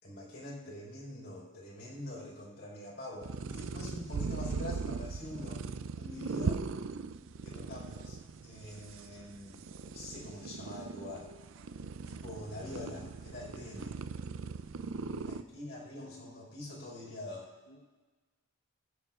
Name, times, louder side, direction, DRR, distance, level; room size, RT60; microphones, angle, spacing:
voice 1, 0.0-5.6 6.0-6.6 7.4-9.6 9.9-11.3 12.1-14.0 15.2-17.5, left 1 dB, 50° left, -4 dB, 4.4 m, -44 dB
sound 1, 3.2-15.4, right 4 dB, 60° right, 0.4 m, -39 dB
voice 2, 14.8-15.3 17.7-17.8, left 1 dB, 80° left, 4 dB, 1.0 m, -60 dB
22.5 x 10.0 x 2.5 m, 1.3 s
head